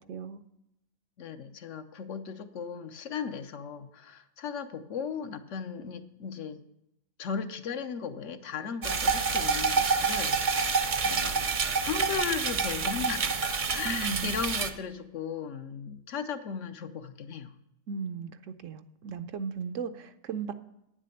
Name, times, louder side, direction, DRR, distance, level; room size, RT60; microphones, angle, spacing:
voice 1, 0.1-0.4 13.9-14.3 17.9-20.5, right 6 dB, 70° right, 10 dB, 0.9 m, -36 dB
voice 2, 1.2-6.6 7.2-17.5, left 6 dB, 65° left, 8 dB, 1.0 m, -37 dB
sound 1, 8.8-14.7, right 5 dB, 45° right, 0.7 m, -28 dB
9.6 x 7.6 x 6.4 m, 0.84 s
omnidirectional pair, 1.5 m